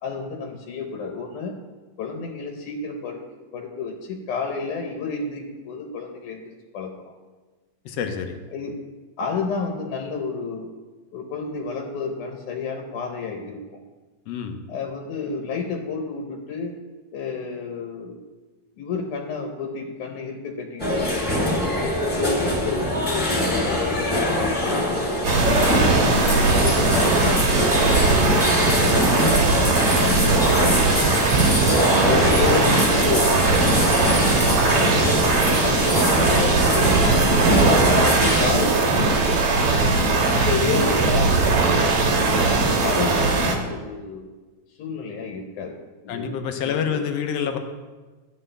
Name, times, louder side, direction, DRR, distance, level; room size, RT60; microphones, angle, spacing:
voice 1, 0.0-1.5 2.0-3.2 3.5-7.1 8.5-8.8 9.2-10.7 11.1-13.6 14.7-16.8 17.1-18.2 18.8-21.6 22.1-25.9 26.2-27.6 28.0-31.4 32.0-35.2 35.6-37.3 37.7-39.8 40.4-41.6 42.0-44.3 44.8-45.8 46.0-46.3 46.6-47.0, left 5 dB, 90° left, 2 dB, 2.4 m, -31 dB
voice 2, 7.8-8.4 14.3-14.6 46.1-47.6, left 7 dB, 70° left, 6 dB, 1.6 m, -27 dB
sound 1, 20.8-38.5, left 1 dB, 10° left, 1.6 m, -23 dB
sound 2, 25.2-43.6, right 3 dB, 75° right, 2.6 m, -19 dB
13.0 x 9.1 x 3.3 m, 1.3 s
omnidirectional pair, 3.4 m